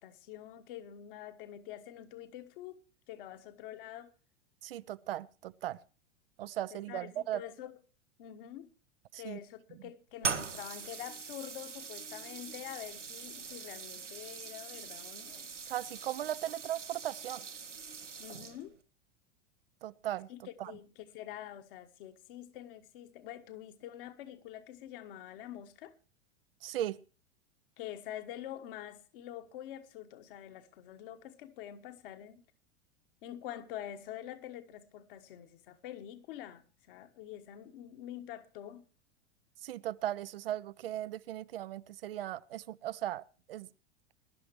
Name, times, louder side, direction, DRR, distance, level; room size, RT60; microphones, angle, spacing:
voice 1, 0.0-2.8 3.1-4.1 6.7-7.8 8.2-8.7 9.2-15.5 18.2-18.8 20.3-25.9 27.8-32.4 33.2-38.8, left 12 dB, 50° left, 1.4 m, -46 dB
voice 2, 4.6-5.8 6.4-7.4 9.1-9.4 15.7-17.5 19.8-20.3 20.6-20.7 26.6-27.0 39.6-43.7, right 13 dB, 55° right, 0.5 m, -37 dB
sound 1, 10.2-18.8, right 5 dB, 85° right, 1.1 m, -42 dB
21.5 x 11.5 x 3.1 m
figure-of-eight pair, 90°, 35 cm